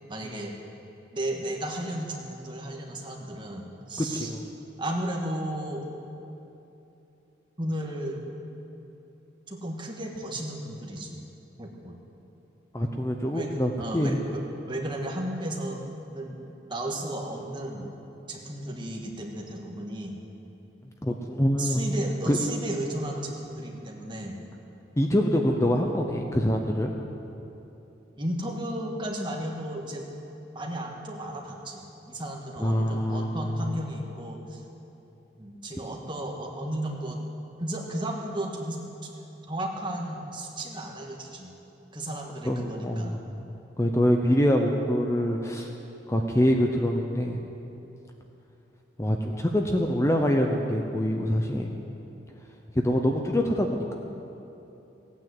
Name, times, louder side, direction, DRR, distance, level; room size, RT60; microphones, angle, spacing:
voice 1, 0.1-0.5 1.1-4.3 4.8-5.8 7.6-8.2 9.5-11.2 11.6-12.0 13.3-15.8 16.1-16.4 16.7-17.9 18.3-20.1 21.6-24.4 28.2-30.0 30.5-34.6 35.4-37.2 37.6-39.1 39.5-41.5 41.9-43.1, right 1 dB, 25° right, 0 dB, 1.6 m, -34 dB
voice 2, 4.0-4.5 12.7-14.2 21.0-21.8 22.3-22.4 25.0-26.9 32.6-33.7 42.4-43.3 43.8-45.7 46.1-47.4 49.0-51.7 52.8-53.9, equal, 15° left, 2 dB, 0.7 m, -25 dB
17.0 x 9.2 x 7.8 m, 3.0 s
head